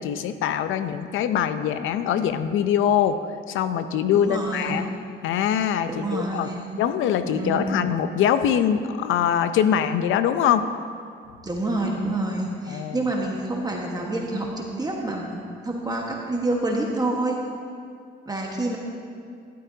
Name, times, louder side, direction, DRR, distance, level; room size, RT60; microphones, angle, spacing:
voice 1, 0.0-3.2 3.5-4.9 5.2-6.5 6.8-10.7 12.7-13.0, left 9 dB, 85° left, 11 dB, 0.5 m, -23 dB
voice 2, 4.1-4.8 5.9-6.8 7.2-7.8 11.4-17.4 18.3-18.8, right 2 dB, 20° right, -1 dB, 1.3 m, -28 dB
12.5 x 11.5 x 2.7 m, 2.3 s
cardioid pair, 90°, 20 cm